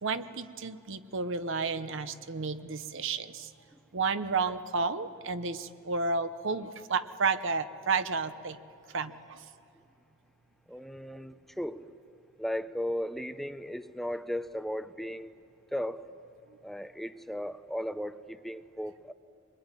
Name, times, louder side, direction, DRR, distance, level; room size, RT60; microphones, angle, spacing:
voice 1, 0.0-3.5 3.9-8.6 8.9-9.4, right 4 dB, 60° right, 11 dB, 1.0 m, -32 dB
voice 2, 10.7-11.9 12.4-15.3 15.7-16.1 16.6-19.1, equal, ahead, 12 dB, 0.6 m, -36 dB
25.0 x 21.0 x 9.9 m, 2.5 s
head